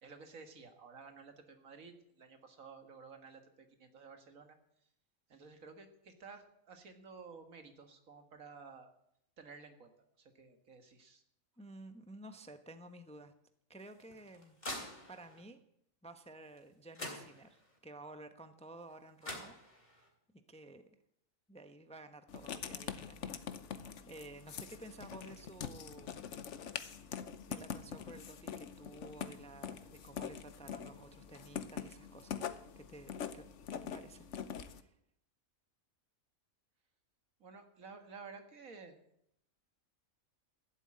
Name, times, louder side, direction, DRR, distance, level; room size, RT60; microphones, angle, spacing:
voice 1, 0.0-4.6 5.3-8.9 9.4-9.9 10.2-11.2 37.4-39.0, right 4 dB, 75° right, 6 dB, 2.0 m, -53 dB
voice 2, 11.6-13.3 13.7-14.6 15.1-15.6 16.0-20.1 20.5-20.8 21.5-23.4 23.7-26.2 26.7-27.0 27.4-33.5 33.7-34.3 34.7-34.9, right 2 dB, 5° left, 8 dB, 0.7 m, -53 dB
sound 1, 13.8-15.4 16.6-16.7 16.9-17.8 18.9-19.0 19.2-20.1, left 1 dB, 30° left, 3.7 m, -46 dB
Writing, 22.3-34.8, left 7 dB, 60° left, 1.1 m, -44 dB
14.5 x 8.1 x 8.7 m, 0.76 s
omnidirectional pair, 1.4 m